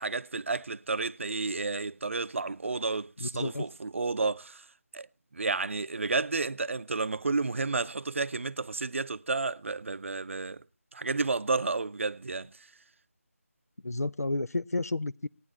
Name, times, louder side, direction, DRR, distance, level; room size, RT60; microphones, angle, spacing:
voice 1, 0.0-4.7 4.9-5.1 5.3-10.6 10.9-12.5, right 3 dB, 55° right, 0.6 m, -31 dB
voice 2, 3.2-3.6 13.8-15.3, left 2 dB, 85° left, 0.6 m, -31 dB
17.0 x 9.9 x 4.4 m
figure-of-eight pair, 160°, 8 cm